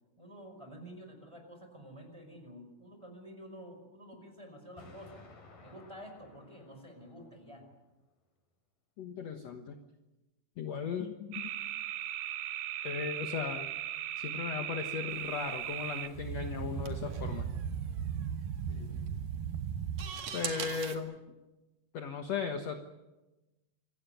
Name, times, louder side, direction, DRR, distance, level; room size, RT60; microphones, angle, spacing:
voice 1, 0.2-5.2 5.6-7.6 18.7-18.9 20.5-20.8, equal, 10° right, 4 dB, 5.0 m, -50 dB
Explosion, 4.8-7.8, left 3 dB, 75° left, 5.8 m, -57 dB
voice 2, 9.0-9.8 10.6-11.5 12.8-13.7 14.2-17.5 20.3-21.2 21.9-22.8, left 6 dB, 60° left, 5 dB, 2.2 m, -37 dB
sound 1, 11.3-20.1, right 9 dB, 80° right, 2.7 m, -37 dB
sound 2, 15.1-21.0, right 7 dB, 55° right, 3.1 m, -45 dB
26.5 x 16.5 x 9.3 m, 1.1 s
omnidirectional pair, 4.0 m